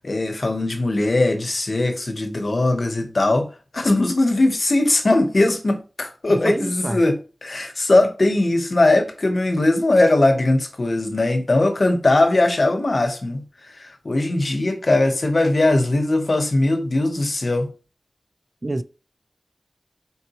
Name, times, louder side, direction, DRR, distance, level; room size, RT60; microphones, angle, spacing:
voice 1, 0.0-17.7, left 2 dB, 60° left, 0.9 m, -20 dB
voice 2, 6.3-7.0 18.6-18.8, right 2 dB, 40° right, 0.4 m, -27 dB
4.2 x 3.9 x 2.9 m
wide cardioid pair, 50°, 0 cm